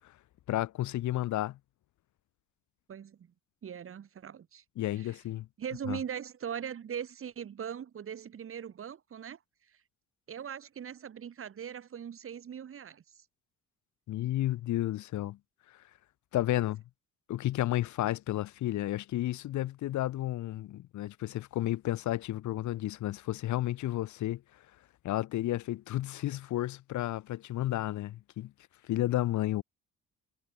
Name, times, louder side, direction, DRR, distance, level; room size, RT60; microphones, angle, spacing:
voice 1, 0.5-1.6 4.8-5.5 5.9-6.0 14.1-15.4 16.3-16.8 17.3-24.4 25.0-28.5 28.9-29.6, left 14 dB, 70° left, 0.9 m, -32 dB
voice 2, 2.9-3.3 3.6-4.6 5.0-5.2 5.6-9.4 10.3-13.2 16.6-16.7, right 8 dB, 45° right, 1.3 m, -40 dB
cardioid pair, 90°, 30 cm